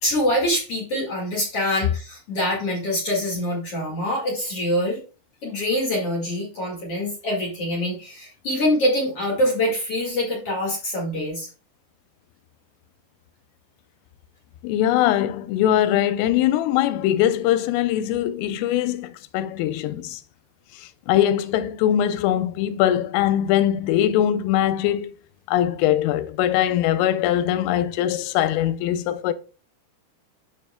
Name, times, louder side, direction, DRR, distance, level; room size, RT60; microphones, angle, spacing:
voice 1, 0.0-5.0 5.4-11.5, left 1 dB, 50° left, 1.8 m, -24 dB
voice 2, 14.6-20.2 20.7-25.1 25.5-29.3, left 11 dB, 85° left, 3.3 m, -21 dB
13.0 x 5.3 x 2.3 m
omnidirectional pair, 5.8 m